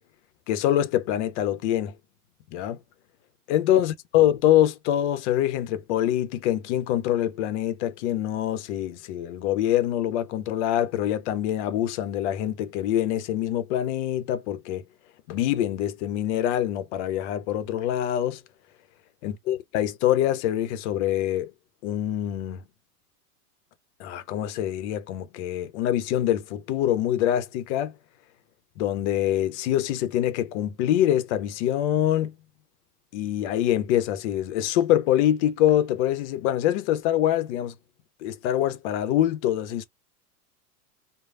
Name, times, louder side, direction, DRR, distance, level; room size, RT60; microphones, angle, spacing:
voice 1, 0.5-1.9 2.5-2.8 3.5-14.8 15.3-18.4 19.2-21.5 21.8-22.6 24.0-27.9 28.8-32.3 33.1-37.7 38.2-39.8, left 12 dB, 50° left, 0.6 m, -25 dB
3.1 x 2.0 x 2.4 m
hypercardioid pair, 115°, 46 cm